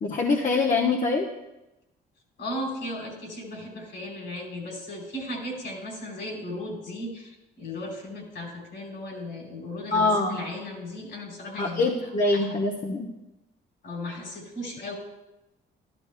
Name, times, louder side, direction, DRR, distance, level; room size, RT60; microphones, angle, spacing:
voice 1, 0.0-1.3 9.9-10.4 11.6-13.1, left 3 dB, 40° left, -1 dB, 1.0 m, -24 dB
voice 2, 2.4-12.5 13.8-14.9, left 1 dB, 60° left, 0 dB, 3.2 m, -36 dB
12.5 x 12.0 x 2.2 m, 0.97 s
cardioid pair, 90°, 20 cm